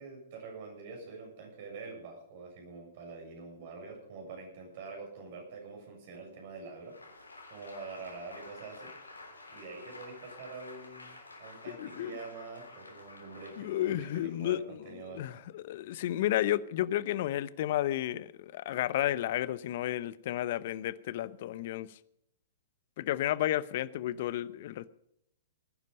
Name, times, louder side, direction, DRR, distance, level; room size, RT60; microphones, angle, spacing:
voice 1, 0.0-7.0 7.5-8.9 9.5-15.4, right 4 dB, 50° right, 7.4 m, -45 dB
Applause, 6.8-14.5, left 3 dB, 85° left, 3.5 m, -51 dB
voice 2, 11.8-12.2 13.6-14.8 15.1-22.0 23.0-24.9, left 13 dB, 50° left, 0.8 m, -32 dB
20.0 x 11.0 x 5.3 m
figure-of-eight pair, 110°, 0 cm